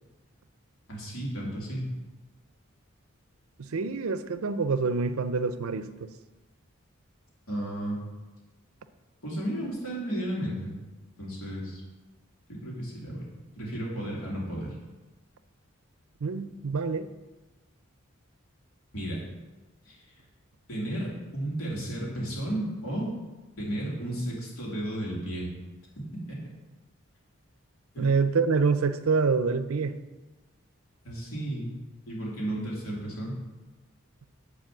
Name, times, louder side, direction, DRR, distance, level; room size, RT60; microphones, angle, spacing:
voice 1, 0.9-1.9 7.5-8.0 9.2-10.7 11.2-11.8 12.5-13.3 13.6-14.7 18.9-19.2 19.8-20.0 20.7-23.1 23.6-25.5 26.3-26.4 27.9-28.1 31.0-31.7 32.1-33.4, right 1 dB, 85° left, 3.0 m, -33 dB
voice 2, 3.6-6.1 16.2-17.1 28.0-30.0, right 4 dB, 90° right, 0.6 m, -26 dB
9.2 x 4.1 x 7.2 m
head